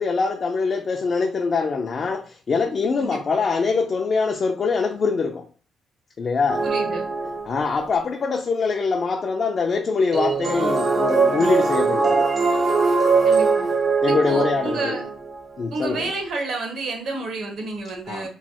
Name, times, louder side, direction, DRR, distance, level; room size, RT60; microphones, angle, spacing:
voice 1, 0.0-5.5 6.2-6.7 7.5-12.3 14.0-15.0 15.6-16.1 18.1-18.3, left 4 dB, 45° left, 0.4 m, -23 dB
voice 2, 3.0-3.4 6.6-7.0 13.2-13.7 14.0-15.1 15.7-18.3, right 3 dB, 65° right, 1.0 m, -30 dB
sound 1, 6.5-7.8 10.1-15.4, right 4 dB, 40° right, 0.5 m, -21 dB
3.1 x 2.2 x 2.9 m
cardioid pair, 90°, 0 cm